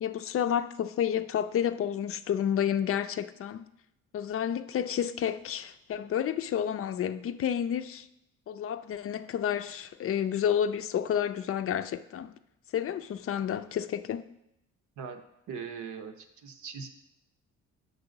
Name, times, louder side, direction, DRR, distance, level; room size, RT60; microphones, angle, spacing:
voice 1, 0.0-3.6 4.1-8.1 8.5-12.3 12.7-14.3, left 9 dB, 50° left, 0.4 m, -30 dB
voice 2, 15.5-16.9, right 6 dB, 70° right, 0.8 m, -40 dB
7.0 x 5.4 x 3.9 m
cardioid pair, 90°, 30 cm